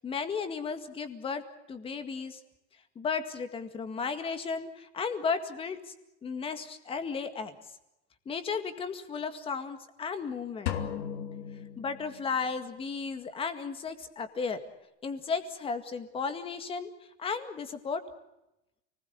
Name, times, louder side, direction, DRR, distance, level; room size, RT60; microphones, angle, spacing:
voice 1, 0.0-1.4 1.7-2.4 3.0-5.9 6.2-7.6 8.3-10.8 11.8-14.6 15.0-16.9 17.2-18.0, left 5 dB, 15° left, 9 dB, 2.0 m, -34 dB
sound 1, 10.7-12.5, left 9 dB, 80° left, 3.7 m, -36 dB
29.5 x 20.5 x 8.1 m, 0.91 s
supercardioid pair, 175°, 35 cm